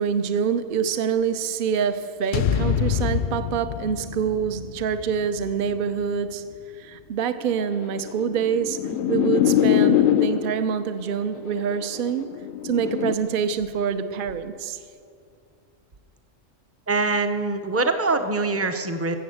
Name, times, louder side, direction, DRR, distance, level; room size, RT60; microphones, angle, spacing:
voice 1, 0.0-12.3 12.6-14.8, right 7 dB, 50° right, 11 dB, 0.7 m, -26 dB
sound 1, 2.3-6.5, left 8 dB, 65° left, 0.5 m, -28 dB
sound 2, 7.6-10.7 11.6-13.1, left 11 dB, 85° left, 1.0 m, -22 dB
voice 2, 16.9-19.2, right 3 dB, 15° right, 7 dB, 0.5 m, -23 dB
16.0 x 7.0 x 7.8 m, 2.3 s
omnidirectional pair, 1.3 m